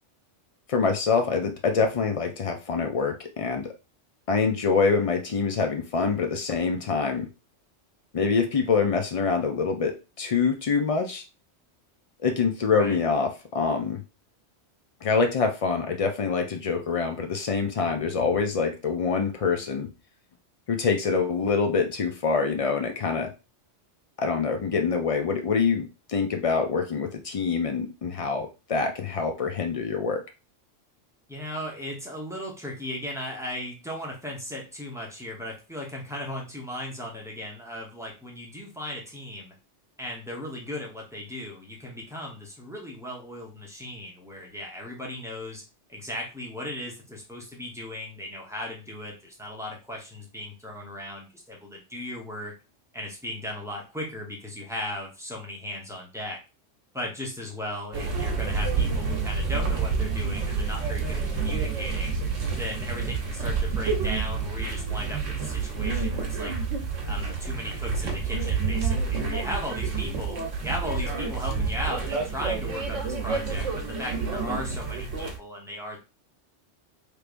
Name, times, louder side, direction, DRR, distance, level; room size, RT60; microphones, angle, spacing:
voice 1, 0.7-3.7 4.3-7.3 8.1-11.2 12.2-14.0 15.0-19.9 20.7-23.3 24.2-30.2, left 5 dB, 65° left, 4 dB, 0.3 m, -25 dB
voice 2, 12.7-13.0 31.3-39.5 40.0-45.6 45.9-52.5 52.9-56.4 56.9-62.2 62.6-66.5 67.0-70.4 70.6-76.0, left 1 dB, 5° right, -2 dB, 0.8 m, -36 dB
sound 1, 57.9-75.4, right 5 dB, 90° right, 1.2 m, -28 dB
3.3 x 3.1 x 2.5 m, 0.29 s
omnidirectional pair, 1.2 m